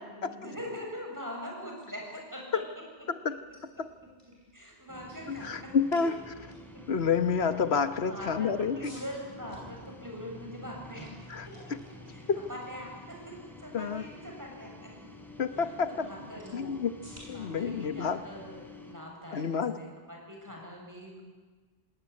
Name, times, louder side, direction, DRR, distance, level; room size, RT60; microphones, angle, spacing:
voice 1, 0.0-3.3 4.5-6.0 6.4-6.8 8.0-11.2 11.6-11.7 12.1-12.2 12.5-14.9 15.5-16.8 17.3-21.2, equal, 20° right, -1 dB, 7.2 m, -43 dB
sound 1, 3.3-19.2, equal, 40° right, 7.7 m, -59 dB
sound 2, 4.9-18.9, left 2 dB, ahead, 3.8 m, -49 dB
voice 2, 5.3-6.1 6.9-8.9 11.3-11.4 12.3-12.4 13.7-14.0 15.4-16.1 16.5-16.9 17.3-18.2 19.3-19.7, left 6 dB, 90° left, 10 dB, 1.4 m, -29 dB
26.5 x 19.0 x 9.8 m, 1.4 s
omnidirectional pair, 1.0 m